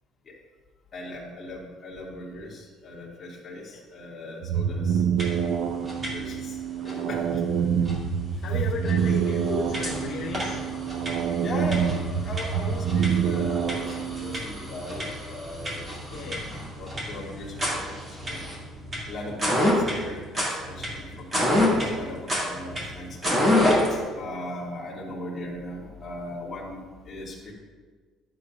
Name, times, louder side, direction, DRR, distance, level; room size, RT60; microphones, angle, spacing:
voice 1, 0.9-5.0 6.1-7.7 8.3-8.4 9.1-9.2 11.4-16.3 16.8-18.5 19.1-23.4 23.9-27.5, left 1 dB, 25° left, -5 dB, 2.4 m, -38 dB
sound 1, 4.4-14.4, right 7 dB, 80° right, 0.6 m, -27 dB
sound 2, 5.2-5.5 5.8-6.4 6.8-6.9 7.8-7.9 8.5-8.6 8.8-24.0, left 1 dB, 20° right, 2.8 m, -28 dB
voice 2, 8.4-10.7 16.1-16.4, left 4 dB, 85° left, -3 dB, 1.4 m, -34 dB
11.5 x 8.2 x 2.6 m, 1.5 s
cardioid pair, 160°, 0 cm